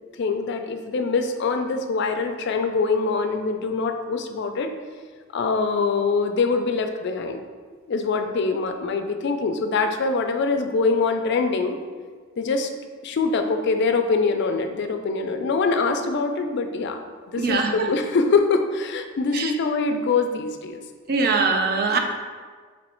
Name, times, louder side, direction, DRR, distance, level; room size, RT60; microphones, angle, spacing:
voice 1, 0.2-4.7 5.3-7.4 7.9-11.8 12.4-12.7 13.0-20.8, left 4 dB, 60° left, 6 dB, 0.3 m, -24 dB
voice 2, 17.4-17.7 19.3-19.5 21.1-22.0, right 4 dB, 50° right, 4 dB, 0.4 m, -21 dB
3.1 x 3.1 x 4.3 m, 1.6 s
head